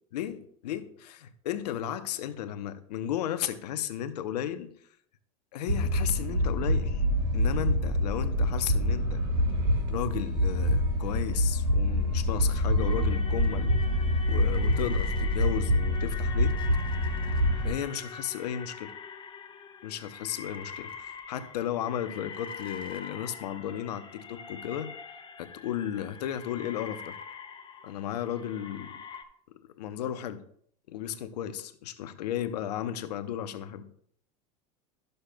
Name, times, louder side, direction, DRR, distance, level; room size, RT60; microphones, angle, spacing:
voice 1, 0.1-4.7 5.5-7.0 7.3-9.2 9.9-13.8 14.3-16.6 17.3-18.9 19.8-24.9 25.4-27.2 27.8-29.0 29.6-30.4 30.9-33.9, left 10 dB, 80° left, 0.8 m, -34 dB
sound 1, 5.7-17.7, equal, 85° right, 2.1 m, -26 dB
sound 2, 12.8-29.2, left 6 dB, 25° left, 1.0 m, -43 dB
13.0 x 6.6 x 2.2 m
hypercardioid pair, 100°, 21 cm